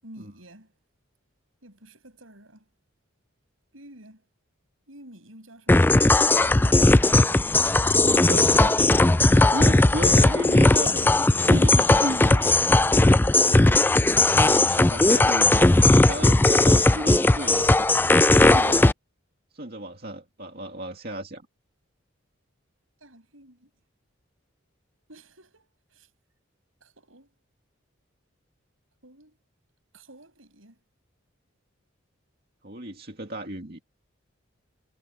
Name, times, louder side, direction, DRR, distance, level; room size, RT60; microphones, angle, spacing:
voice 1, 0.0-0.7 1.6-2.7 3.7-4.2 4.9-6.2 7.8-8.5 11.6-11.7 14.3-15.1 23.0-23.7 25.1-26.1 26.8-27.3 29.0-29.4 29.9-30.8, right 1 dB, 80° right, 7.7 m, -50 dB
sound 1, 5.7-18.9, left 2 dB, 10° left, 0.3 m, -18 dB
voice 2, 8.0-8.9 9.2-12.7 14.4-17.8 18.3-18.9 19.5-21.4 32.6-33.8, right 1 dB, 50° right, 2.3 m, -34 dB
head